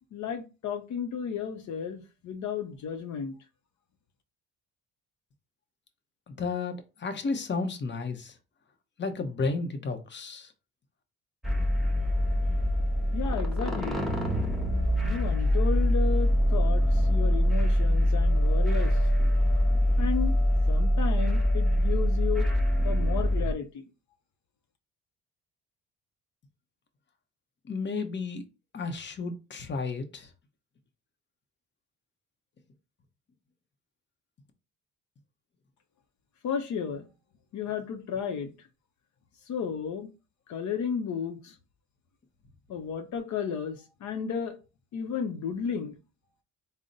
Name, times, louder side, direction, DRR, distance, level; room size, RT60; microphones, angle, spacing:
voice 1, 0.1-3.4 13.1-14.1 15.0-19.4 20.0-20.3 20.7-22.5 22.8-23.8 36.4-37.1 37.5-38.7 39.5-40.1 40.5-41.6 42.7-44.6 44.9-45.9, left 7 dB, 70° left, 0.7 m, -33 dB
voice 2, 6.3-8.3 9.0-10.5 27.7-28.4 28.7-30.3, left 4 dB, 35° left, 0.8 m, -32 dB
sound 1, 11.4-23.5, equal, ahead, 1.1 m, -24 dB
3.7 x 2.1 x 3.9 m
cardioid pair, 90°, 30 cm